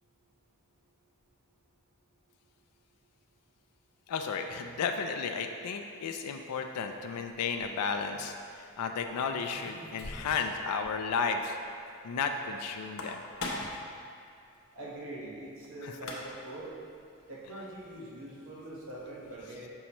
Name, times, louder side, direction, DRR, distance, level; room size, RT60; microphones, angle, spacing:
voice 1, 4.1-11.6 12.0-13.2 15.8-15.9, left 5 dB, 90° left, 5 dB, 0.4 m, -33 dB
sound 1, 9.1-10.6 10.8-10.9 11.3-11.4 12.8-13.9 15.6-15.7 15.9-16.5, left 2 dB, 65° left, 0.8 m, -40 dB
voice 2, 14.7-16.7 17.3-19.7, right 1 dB, 65° right, -5 dB, 1.2 m, -43 dB
6.3 x 5.6 x 3.0 m, 2.4 s
head